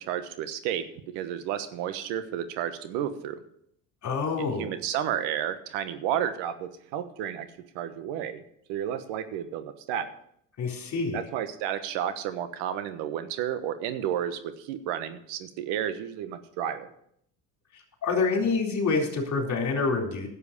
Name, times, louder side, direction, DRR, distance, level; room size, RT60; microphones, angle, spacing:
voice 1, 0.1-0.9 1.1-3.4 4.4-7.5 7.7-8.4 8.7-10.1 11.1-16.9, right 10 dB, 80° right, 11 dB, 1.3 m, -31 dB
voice 2, 4.0-4.7 10.6-11.2 18.0-20.3, left 4 dB, 40° left, 1 dB, 3.8 m, -27 dB
11.0 x 8.0 x 6.7 m, 0.71 s
supercardioid pair, 100°, 42 cm